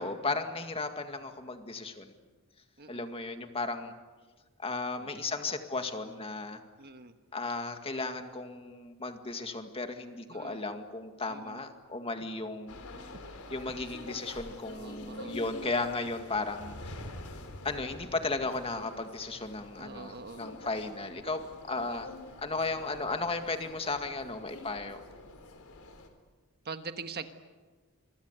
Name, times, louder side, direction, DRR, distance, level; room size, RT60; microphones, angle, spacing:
voice 1, 0.0-2.1 2.9-3.9 4.6-6.6 7.3-12.8 13.5-16.9 17.6-22.1 22.4-25.0, left 3 dB, 25° left, 6 dB, 2.1 m, -35 dB
voice 2, 2.8-3.1 5.0-5.6 6.8-7.1 10.3-10.6 11.3-11.6 14.7-15.9 19.7-20.4 21.8-22.0 26.6-27.3, right 4 dB, 45° right, 8 dB, 1.4 m, -44 dB
sound 1, 12.7-26.1, left 2 dB, 85° left, 3.9 m, -47 dB
27.5 x 23.0 x 8.2 m, 1.4 s
head